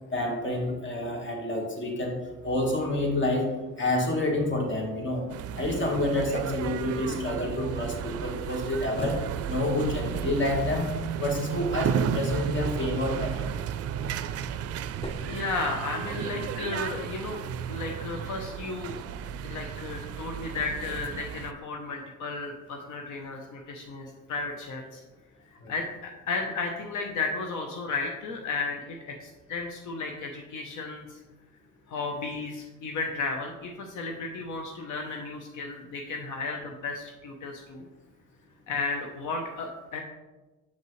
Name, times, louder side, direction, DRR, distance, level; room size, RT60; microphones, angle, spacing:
voice 1, 0.1-2.2 2.4-5.2 5.5-13.5 25.6-25.7, left 1 dB, 40° left, 2 dB, 1.5 m, -28 dB
sound 1, 5.3-21.5, right 8 dB, 55° right, 0.4 m, -33 dB
sound 2, 8.4-11.5 13.7-16.3, equal, 20° left, 0.7 m, -43 dB
voice 2, 15.2-19.0 19.4-25.0 25.5-31.2 31.9-37.8 38.7-40.0, left 4 dB, 75° left, 2 dB, 0.8 m, -34 dB
6.7 x 5.6 x 3.1 m, 1.2 s
cardioid pair, 90°, 30 cm